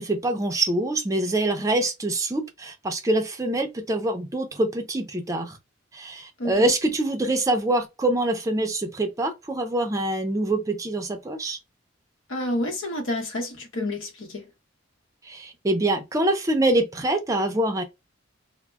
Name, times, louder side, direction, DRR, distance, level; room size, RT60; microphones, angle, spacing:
voice 1, 0.0-5.6 5.9-11.6 15.2-17.8, right 1 dB, 15° right, 0.4 m, -25 dB
voice 2, 12.3-14.5, left 1 dB, 80° left, 1.0 m, -29 dB
2.2 x 2.0 x 3.3 m
head